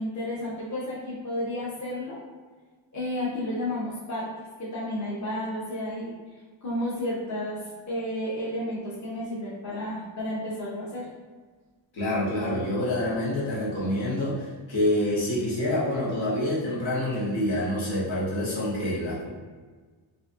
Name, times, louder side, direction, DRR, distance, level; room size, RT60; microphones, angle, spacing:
voice 1, 0.0-2.2 2.9-4.3 4.6-6.1 6.6-11.1, left 1 dB, 40° left, -6 dB, 0.9 m, -32 dB
voice 2, 11.9-19.3, left 1 dB, 80° left, -7 dB, 1.4 m, -27 dB
3.9 x 2.6 x 2.5 m, 1.4 s
wide cardioid pair, 155°, 46 cm